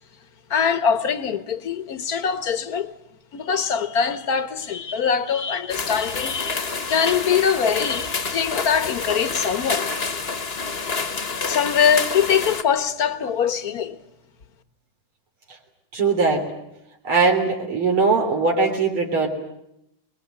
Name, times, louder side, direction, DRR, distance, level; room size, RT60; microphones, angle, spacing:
voice 1, 0.5-2.9 3.3-9.9 11.5-14.0, left 7 dB, 50° left, 1.7 m, -23 dB
sound 1, 5.7-12.6, left 4 dB, 35° left, 1.5 m, -28 dB
voice 2, 15.9-16.5 17.0-19.3, right 4 dB, 85° right, 4.2 m, -20 dB
25.5 x 22.0 x 9.1 m
omnidirectional pair, 2.3 m